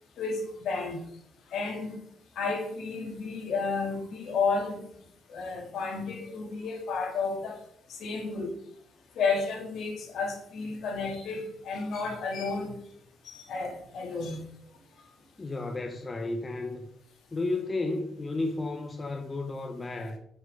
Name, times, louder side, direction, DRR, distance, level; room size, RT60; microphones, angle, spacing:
voice 1, 0.2-1.0 1.5-2.0 2.4-4.8 5.3-7.6 7.9-8.5 9.2-12.8 13.2-14.4, left 4 dB, 70° left, 2.5 m, -32 dB
voice 2, 15.4-16.9 17.3-20.2, left 2 dB, 25° left, 1.0 m, -32 dB
7.2 x 6.3 x 5.5 m
cardioid pair, 90°, 0 cm